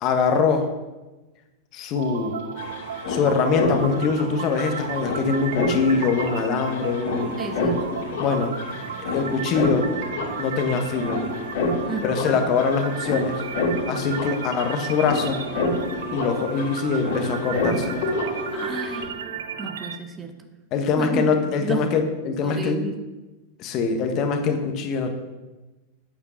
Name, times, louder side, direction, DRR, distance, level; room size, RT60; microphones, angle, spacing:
voice 1, 0.0-0.7 1.7-2.4 3.1-7.4 8.2-8.5 9.1-9.9 10.4-11.3 12.0-13.4 13.9-15.4 16.1-18.1 20.7-22.8 23.6-25.1, left 5 dB, 40° left, 6 dB, 1.4 m, -23 dB
sound 1, 2.0-2.1 2.3-19.0, left 2 dB, 55° left, 2.8 m, -29 dB
sound 2, 2.0-20.0, right 7 dB, 65° right, 0.8 m, -35 dB
voice 2, 7.4-8.0 11.8-12.6 18.5-20.5 20.9-21.9 22.4-23.0, right 3 dB, 20° right, 6 dB, 1.2 m, -33 dB
8.9 x 8.6 x 5.9 m, 1.1 s
figure-of-eight pair, 90°, 0 cm